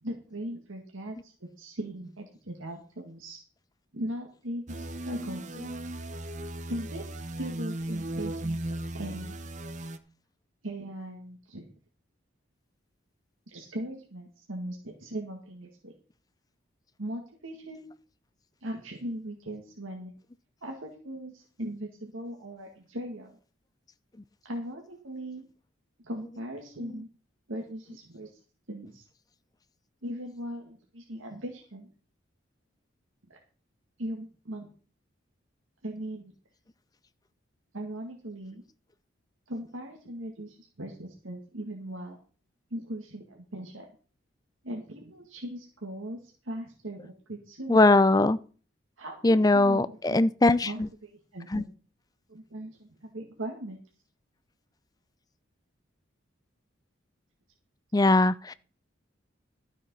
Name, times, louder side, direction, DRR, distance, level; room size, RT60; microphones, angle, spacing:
voice 1, 0.0-3.4 3.9-5.6 6.7-8.6 8.9-9.4 10.6-11.7 13.5-15.9 17.0-17.9 18.6-20.1 20.6-23.3 24.4-25.4 26.0-27.1 27.5-28.3 28.7-29.0 30.0-31.9 33.3-33.4 34.0-34.7 35.8-36.3 37.7-38.6 39.5-42.2 42.7-43.9 44.6-47.8 49.0-50.2 50.6-51.7 52.3-53.8, right 1 dB, 90° right, 2.0 m, -39 dB
sound 1, 4.7-10.0, right 1 dB, 35° right, 0.8 m, -36 dB
voice 2, 47.7-48.4 49.2-50.9 51.5-51.6 57.9-58.5, left 2 dB, 20° left, 0.5 m, -21 dB
12.5 x 7.2 x 5.4 m
head